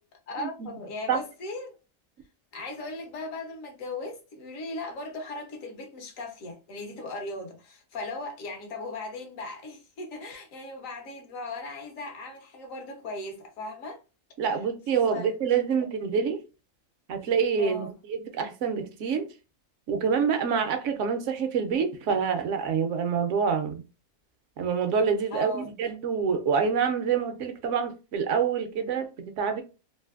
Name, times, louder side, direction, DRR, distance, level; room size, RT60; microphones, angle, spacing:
voice 1, 0.3-1.7 2.5-14.0 15.1-15.3 17.6-17.9 25.3-25.7, left 2 dB, 70° left, 1.3 m, -38 dB
voice 2, 14.4-16.4 17.1-19.3 19.9-23.8 24.6-29.6, right 6 dB, 70° right, 0.9 m, -26 dB
3.1 x 2.5 x 2.4 m
omnidirectional pair, 1.4 m